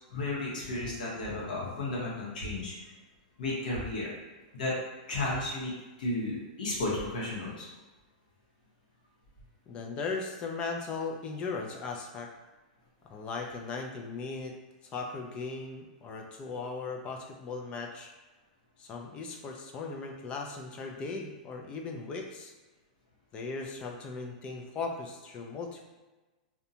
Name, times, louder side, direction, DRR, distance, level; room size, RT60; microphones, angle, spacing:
voice 1, 0.1-2.7 3.4-4.1 4.5-4.8 5.1-5.7 6.0-7.7, left 2 dB, 80° left, -5 dB, 1.0 m, -33 dB
voice 2, 9.7-12.3 13.1-14.5 14.8-18.1 18.8-22.5 23.3-25.9, left 4 dB, 25° left, 2 dB, 0.3 m, -38 dB
2.6 x 2.1 x 2.8 m, 1.2 s
supercardioid pair, 155°, 4 cm